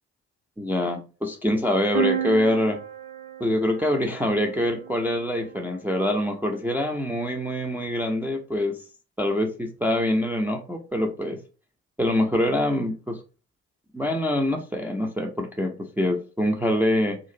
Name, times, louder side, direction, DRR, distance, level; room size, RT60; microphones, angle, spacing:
voice 1, 0.6-2.8 3.4-8.8 9.2-11.4 12.0-13.2 13.9-17.2, left 1 dB, 5° right, 2 dB, 0.3 m, -25 dB
sound 1, 1.9-5.7, right 10 dB, 70° right, 0.5 m, -32 dB
2.4 x 2.0 x 2.5 m, 0.35 s
figure-of-eight pair, 45°, 37 cm